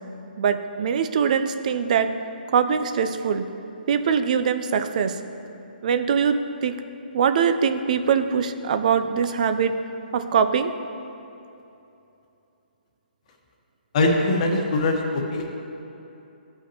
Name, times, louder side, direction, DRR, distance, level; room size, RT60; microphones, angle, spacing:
voice 1, 0.4-2.1 2.5-3.5 3.9-5.2 5.8-6.4 6.6-6.8 7.1-9.7 10.1-10.7, right 7 dB, 50° right, 9 dB, 0.5 m, -22 dB
voice 2, 13.9-15.5, left 2 dB, 40° left, 1 dB, 1.2 m, -22 dB
15.0 x 5.6 x 2.9 m, 2.8 s
hypercardioid pair, 155°, 5 cm